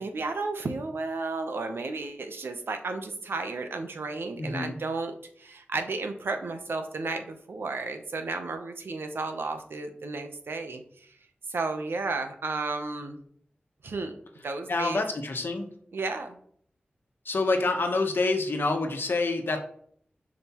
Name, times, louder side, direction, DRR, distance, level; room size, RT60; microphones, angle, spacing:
voice 1, 0.0-10.8 11.5-13.2 13.8-14.1 14.4-15.0 15.9-16.4, right 3 dB, 85° right, 6 dB, 0.8 m, -33 dB
voice 2, 4.4-4.8 14.7-15.7 17.2-19.6, left 3 dB, 75° left, 4 dB, 1.1 m, -27 dB
6.9 x 5.1 x 3.0 m, 0.62 s
cardioid pair, 50°, 4 cm